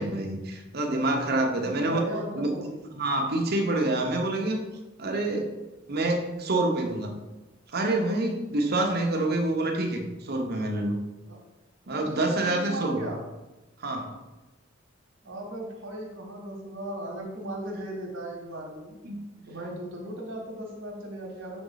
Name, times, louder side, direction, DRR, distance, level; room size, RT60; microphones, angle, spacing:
voice 1, 0.0-2.1 2.3-2.5 2.9-4.6 5.0-5.6 5.9-7.1 7.7-11.0 11.9-13.1 13.8-14.2 19.0-19.2, right 2 dB, 55° right, 3 dB, 0.9 m, -27 dB
voice 2, 1.4-2.8 11.3-11.4 11.9-13.2 15.2-18.9 19.5-21.6, right 1 dB, 75° right, -1 dB, 1.2 m, -37 dB
6.0 x 4.0 x 4.0 m, 1.1 s
head